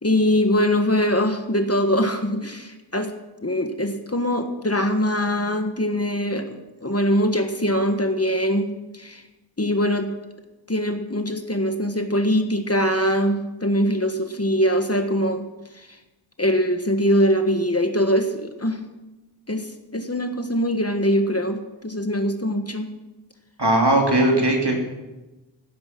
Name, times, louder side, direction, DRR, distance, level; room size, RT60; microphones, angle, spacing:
voice 1, 0.0-3.1 3.4-9.2 9.6-10.1 10.7-15.5 15.7-15.9 16.4-18.8 19.5-22.9, equal, 30° left, 6 dB, 1.4 m, -22 dB
voice 2, 23.6-24.8, right 1 dB, 60° right, 1 dB, 3.1 m, -18 dB
16.5 x 9.6 x 6.1 m, 1.1 s
wide cardioid pair, 45°, 45 cm